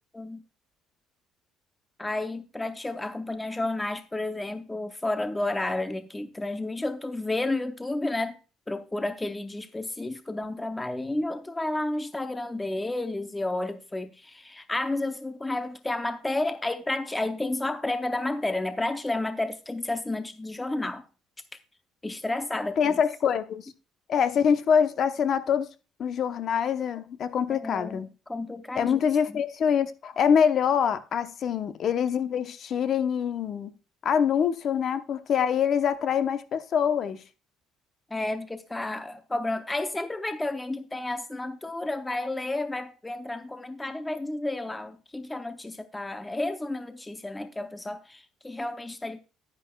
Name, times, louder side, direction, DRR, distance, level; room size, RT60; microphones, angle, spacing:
voice 1, 2.0-8.4 8.7-21.1 22.0-23.0 27.5-29.0 29.3-29.4 38.1-49.2, left 2 dB, 10° left, 0.6 m, -31 dB
voice 2, 22.8-23.7 24.1-25.7 26.0-28.1 28.8-33.7 34.0-37.2, left 7 dB, 45° left, 0.8 m, -25 dB
10.5 x 9.9 x 2.3 m
cardioid pair, 150°, 0 cm